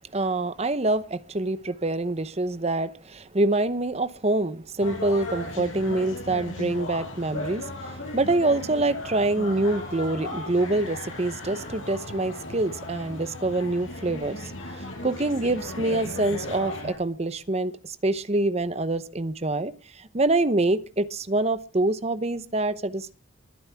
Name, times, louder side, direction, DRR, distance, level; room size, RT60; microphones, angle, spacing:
voice 1, 0.1-23.1, right 2 dB, 30° right, 0.8 m, -26 dB
sound 1, 4.8-16.9, left 2 dB, 75° left, 5.7 m, -36 dB
23.0 x 9.5 x 3.5 m
head